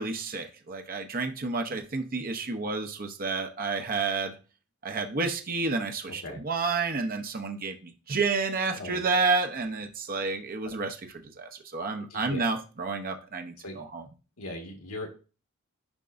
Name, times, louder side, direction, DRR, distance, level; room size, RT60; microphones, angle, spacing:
voice 1, 0.0-4.3 4.8-11.0 11.4-14.0, right 4 dB, 40° right, 5 dB, 0.7 m, -30 dB
voice 2, 6.1-6.4 8.8-9.1 10.6-10.7 12.1-12.5 13.6-13.8 14.4-15.1, left 2 dB, 80° left, 2 dB, 1.7 m, -39 dB
10.5 x 4.4 x 2.6 m, 0.34 s
head